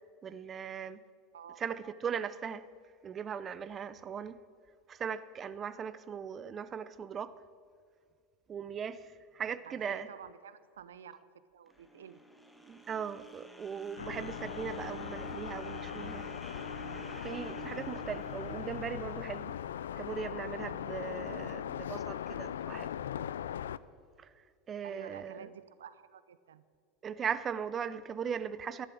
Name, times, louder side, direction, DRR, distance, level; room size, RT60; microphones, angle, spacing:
voice 1, 0.2-1.0 1.6-2.6 3.0-4.4 4.9-7.3 8.5-10.1 12.6-16.2 17.1-19.5 20.0-22.9 24.2-24.3 24.7-25.5 27.0-28.9, right 7 dB, 30° right, 0.7 m, -39 dB
voice 2, 9.7-11.2 11.5-12.2 24.8-26.6, right 8 dB, 80° right, 0.8 m, -50 dB
sound 1, 11.7-19.9, right 3 dB, 5° left, 1.7 m, -49 dB
sound 2, 14.0-23.8, left 9 dB, 80° left, 0.4 m, -39 dB
13.5 x 11.5 x 7.7 m
hypercardioid pair, 90°, 0 cm